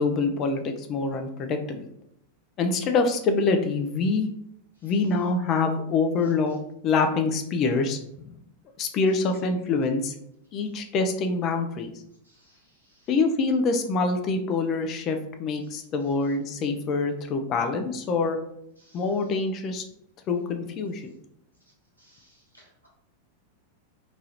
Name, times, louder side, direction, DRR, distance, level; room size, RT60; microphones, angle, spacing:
voice 1, 0.0-1.9 2.6-4.3 4.8-6.6 6.8-8.0 8.8-10.1 10.5-11.9 13.1-18.4 18.9-19.8 20.3-21.1, left 4 dB, 35° left, 6 dB, 0.3 m, -25 dB
voice 2, 12.2-12.6 12.8-13.1 18.8-19.0 22.0-22.9, equal, 85° right, -4 dB, 1.0 m, -60 dB
2.9 x 2.3 x 2.7 m, 0.76 s
figure-of-eight pair, 90°, 0 cm